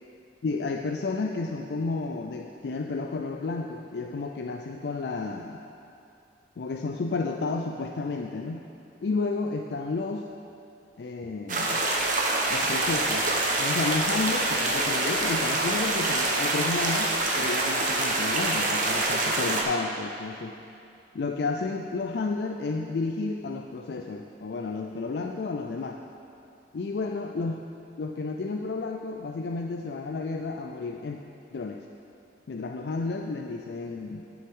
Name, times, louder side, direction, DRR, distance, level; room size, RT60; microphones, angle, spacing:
voice 1, 0.4-5.6 6.6-8.7 9.0-10.2 11.0-11.9 12.5-13.3 13.6-20.6 21.1-26.0 26.7-27.6 28.0-31.2 31.5-31.8 32.5-34.2, left 3 dB, 70° left, 2 dB, 0.4 m, -31 dB
sound 1, 11.5-19.6, right 2 dB, 45° right, 1.0 m, -26 dB
12.5 x 7.0 x 3.6 m, 2.6 s
head